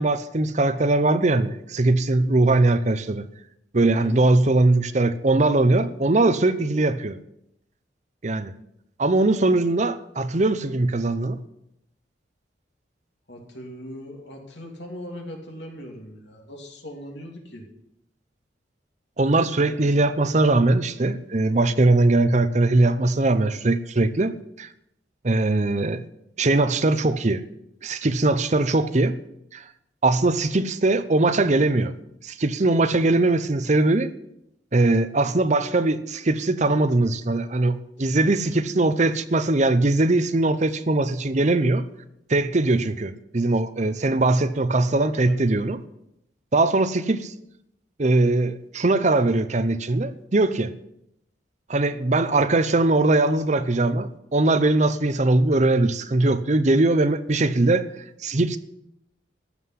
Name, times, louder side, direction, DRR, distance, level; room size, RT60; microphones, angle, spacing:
voice 1, 0.0-3.2 3.7-7.2 8.2-8.5 9.0-11.4 19.2-24.7 25.2-26.0 26.4-27.4 27.8-29.2 29.5-29.6 30.0-31.9 32.2-34.1 34.7-41.9 42.3-45.8 46.5-47.3 48.0-50.7 51.7-57.8 58.2-58.6, right 2 dB, 40° right, 0.7 m, -21 dB
voice 2, 3.9-4.3 13.3-17.7 19.7-19.9 38.2-38.3 45.2-45.6, equal, 70° left, 2.9 m, -40 dB
14.5 x 5.7 x 9.7 m
head